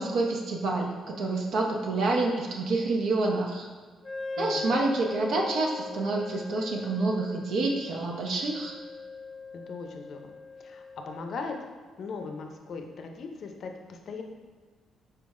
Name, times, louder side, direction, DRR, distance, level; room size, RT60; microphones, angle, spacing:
voice 1, 0.0-3.7 4.4-8.8, right 2 dB, 75° right, 0 dB, 0.6 m, -28 dB
Wind instrument woodwind instrument, 4.0-11.4, left 4 dB, 30° left, 0.7 m, -40 dB
voice 2, 4.4-4.8 9.5-10.3 10.6-11.6 12.0-14.2, left 4 dB, 60° left, 4 dB, 0.4 m, -39 dB
4.4 x 2.0 x 3.5 m, 1.5 s
cardioid pair, 90°, 0 cm